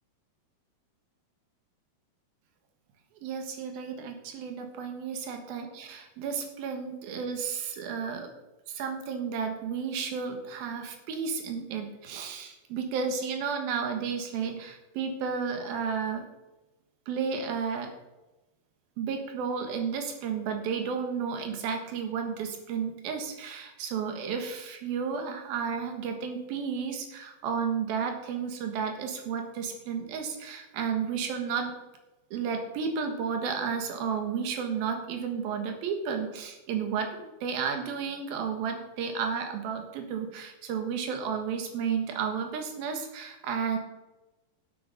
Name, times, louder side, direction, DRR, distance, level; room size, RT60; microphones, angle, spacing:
voice 1, 3.2-8.3 8.7-16.3 17.1-17.9 19.0-31.7 32.3-43.8, right 6 dB, 75° right, 5 dB, 3.3 m, -32 dB
11.5 x 7.9 x 5.3 m, 1.0 s
omnidirectional pair, 4.3 m